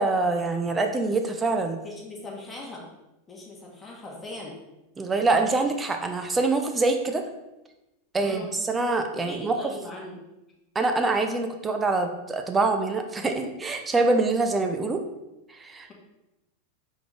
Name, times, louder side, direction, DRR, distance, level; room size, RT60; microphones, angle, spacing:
voice 1, 0.0-1.8 5.0-7.2 8.1-9.6 10.7-15.0 15.5-15.9, right 3 dB, 20° right, 5 dB, 0.8 m, -25 dB
voice 2, 1.8-2.9 3.3-4.6 8.2-8.5 9.3-10.2, left 2 dB, 20° left, -2 dB, 1.8 m, -39 dB
4.9 x 4.0 x 5.0 m, 0.97 s
hypercardioid pair, 95°, 0 cm